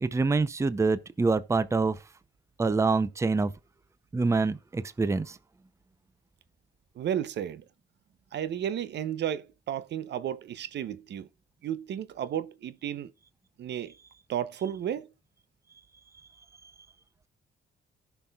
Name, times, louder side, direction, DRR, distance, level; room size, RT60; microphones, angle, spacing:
voice 1, 0.0-2.0 2.6-3.5 4.1-5.4 16.6-16.7, right 3 dB, 15° right, 0.6 m, -26 dB
voice 2, 7.0-7.6 8.3-11.3 11.6-13.1 13.6-13.9 14.3-15.1, right 10 dB, 60° right, 0.7 m, -33 dB
17.5 x 6.0 x 2.3 m
cardioid pair, 90°, 20 cm